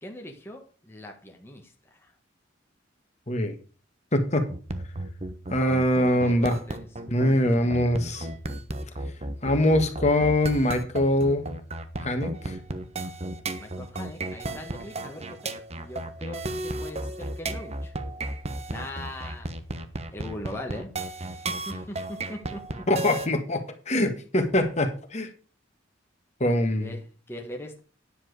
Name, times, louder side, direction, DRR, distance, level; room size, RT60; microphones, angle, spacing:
voice 1, 0.0-2.1 6.1-6.9 13.6-17.9 18.7-19.5 20.1-20.9 21.3-22.6 26.8-27.8, left 1 dB, 15° left, 2 dB, 1.6 m, -40 dB
voice 2, 4.1-4.5 5.5-6.6 7.1-8.3 9.4-11.5 12.0-12.6 22.9-25.3 26.4-26.9, left 1 dB, 35° left, 6 dB, 1.8 m, -23 dB
sound 1, 4.5-23.3, right 2 dB, 35° right, 1.2 m, -34 dB
10.5 x 7.5 x 4.9 m, 0.37 s
head